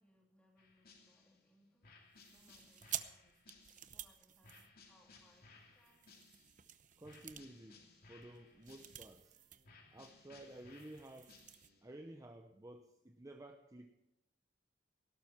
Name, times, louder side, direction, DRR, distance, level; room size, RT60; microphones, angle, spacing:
voice 1, 0.0-2.0 2.3-3.5 3.9-6.2, equal, 5° left, -1 dB, 3.4 m, -71 dB
sound 1, 0.6-1.4 1.8-4.0 4.4-6.7 7.0-9.3 9.6-11.9, left 4 dB, 55° left, 2.7 m, -63 dB
sound 2, 2.1-5.2 5.8-9.7 10.0-10.1 10.4-11.7, right 11 dB, 45° right, 0.7 m, -50 dB
sound 3, 4.9-11.8, right 1 dB, 75° right, 4.9 m, -78 dB
voice 2, 7.0-9.4 9.9-11.4 11.8-13.9, right 1 dB, 20° right, 5 dB, 0.8 m, -53 dB
18.0 x 12.0 x 4.4 m, 0.89 s
head